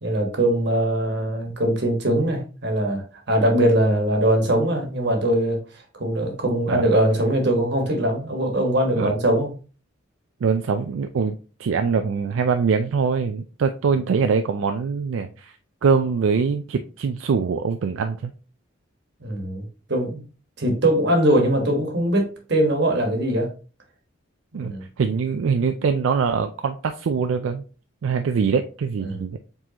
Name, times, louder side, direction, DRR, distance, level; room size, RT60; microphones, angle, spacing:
voice 1, 0.0-5.6 5.9-9.5 19.2-20.2 20.6-23.5 24.5-24.8 29.0-29.2, right 1 dB, 55° right, 3 dB, 1.3 m, -21 dB
voice 2, 10.4-11.3 11.6-15.6 15.8-18.3 24.5-27.6 28.0-29.4, right 5 dB, 80° right, 7 dB, 0.4 m, -23 dB
4.8 x 3.8 x 2.9 m, 0.36 s
head